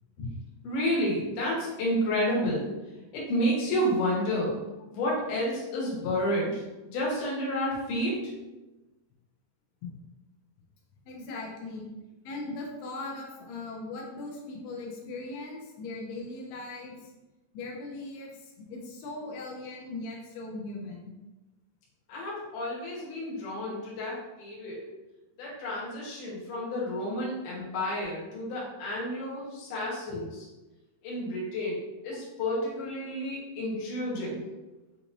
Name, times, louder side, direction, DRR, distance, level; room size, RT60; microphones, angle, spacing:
voice 1, 0.6-2.7 3.1-4.6 4.9-8.3 22.1-24.8 25.4-30.5 31.0-34.4, equal, 65° left, -5 dB, 2.4 m, -30 dB
voice 2, 11.1-11.9 12.3-17.0 17.5-18.3 18.7-21.0, left 2 dB, 90° left, -2 dB, 2.7 m, -39 dB
6.4 x 3.0 x 2.5 m, 1.1 s
omnidirectional pair, 4.5 m